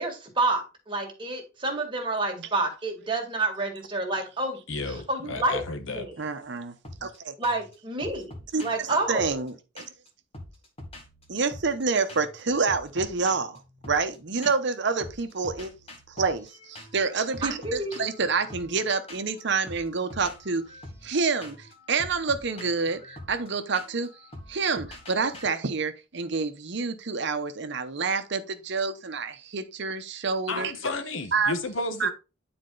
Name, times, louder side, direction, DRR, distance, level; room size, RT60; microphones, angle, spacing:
voice 1, 0.0-4.6 4.9-5.6 5.9-6.2 7.4-8.2 8.6-9.4 17.4-18.1, right 2 dB, 25° right, 2.0 m, -29 dB
voice 2, 4.7-6.0 30.5-32.1, left 3 dB, 80° left, 1.1 m, -32 dB
voice 3, 6.2-6.7 7.0-7.3 8.5-9.9 11.3-15.7 16.2-20.6 21.0-24.1 24.5-30.7 31.3-31.5 32.0-32.1, right 4 dB, 60° right, 0.9 m, -28 dB
sound 1, 6.8-7.2 7.4-7.7 8.0-10.1 10.3-11.8 12.1-12.4 12.7-14.7 15.0-25.4, left 1 dB, 30° left, 1.7 m, -45 dB
9.7 x 4.3 x 3.9 m
head